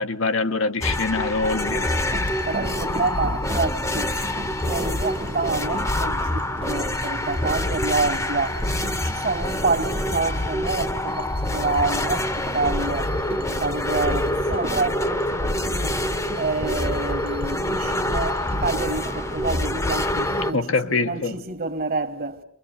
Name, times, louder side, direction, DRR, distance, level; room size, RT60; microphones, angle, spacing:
voice 1, 0.0-1.9 20.5-21.4, left 3 dB, 70° left, 1.2 m, -24 dB
sound 1, 0.8-20.5, left 1 dB, 15° left, 1.0 m, -26 dB
sound 2, 1.6-20.6, right 2 dB, 30° right, 1.0 m, -37 dB
voice 2, 2.4-4.2 4.7-8.6 9.0-13.2 13.5-16.0 16.3-22.4, right 3 dB, 45° right, 1.8 m, -28 dB
28.5 x 23.0 x 6.9 m
head